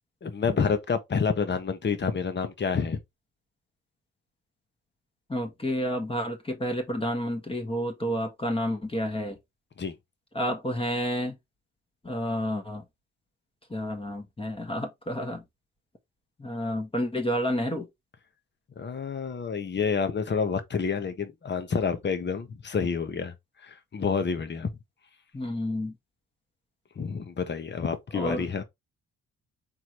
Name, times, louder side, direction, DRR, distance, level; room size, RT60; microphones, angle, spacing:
voice 1, 0.2-3.0 9.8-9.9 18.8-23.3 23.6-24.7 27.0-28.6, left 5 dB, 35° left, 1.2 m, -28 dB
voice 2, 5.3-9.4 10.3-11.4 12.0-12.8 13.7-15.4 16.4-17.9 25.3-25.9 28.1-28.4, equal, 20° left, 1.5 m, -30 dB
4.7 x 3.6 x 3.1 m
cardioid pair, 90°, 30 cm